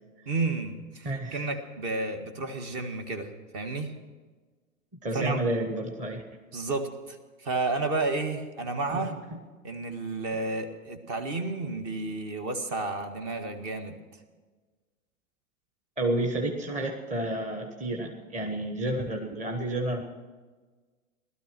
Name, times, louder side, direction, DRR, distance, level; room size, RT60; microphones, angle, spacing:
voice 1, 0.3-3.9 5.1-5.4 6.5-9.1 9.6-14.0, right 3 dB, 40° right, 7 dB, 1.8 m, -31 dB
voice 2, 1.0-1.4 5.0-6.2 8.9-9.4 16.0-20.0, right 1 dB, 15° right, 3 dB, 1.3 m, -30 dB
17.0 x 12.5 x 6.1 m, 1.4 s
figure-of-eight pair, 105°, 42 cm